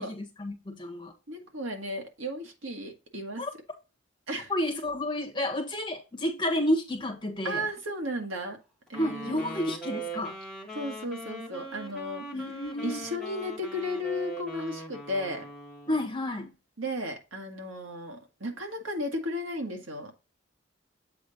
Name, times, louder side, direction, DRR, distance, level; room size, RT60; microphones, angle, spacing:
voice 1, 0.0-1.1 3.4-3.5 4.5-7.7 9.0-10.4 12.3-13.0 15.9-16.5, left 1 dB, 25° left, 1.3 m, -30 dB
voice 2, 1.3-3.4 4.3-4.5 7.4-8.6 8.9-9.6 10.7-12.3 12.8-15.5 16.8-20.1, left 1 dB, 85° right, 1.8 m, -34 dB
Wind instrument woodwind instrument, 8.9-16.1, right 2 dB, ahead, 1.3 m, -41 dB
7.9 x 4.3 x 3.9 m
head